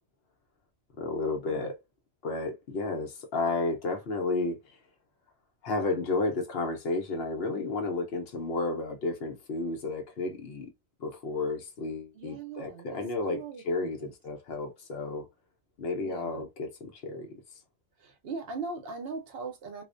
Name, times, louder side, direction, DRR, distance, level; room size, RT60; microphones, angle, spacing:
voice 1, 1.0-1.8 2.2-4.8 5.6-10.7 11.0-15.3 15.8-17.4, left 3 dB, 65° left, 0.9 m, -32 dB
voice 2, 12.1-14.1 16.0-16.4 18.0-19.8, right 4 dB, 65° right, 0.8 m, -40 dB
2.4 x 2.1 x 2.4 m
omnidirectional pair, 1.1 m